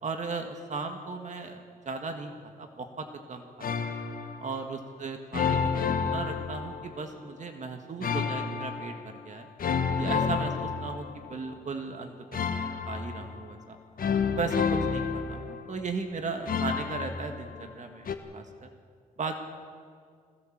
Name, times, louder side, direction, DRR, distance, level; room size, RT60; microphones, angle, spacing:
voice 1, 0.0-2.3 2.6-3.9 4.4-9.5 9.9-12.2 12.5-13.8 14.2-18.7 19.2-19.4, right 4 dB, 55° right, 5 dB, 1.8 m, -36 dB
sound 1, 3.6-4.5 5.3-7.1 8.0-9.0 9.6-11.4 12.3-13.5 14.0-15.8 16.5-17.7 18.0-18.1, left 6 dB, 70° left, 1.4 m, -30 dB
21.5 x 17.0 x 7.5 m, 2.1 s
cardioid pair, 100°, 15 cm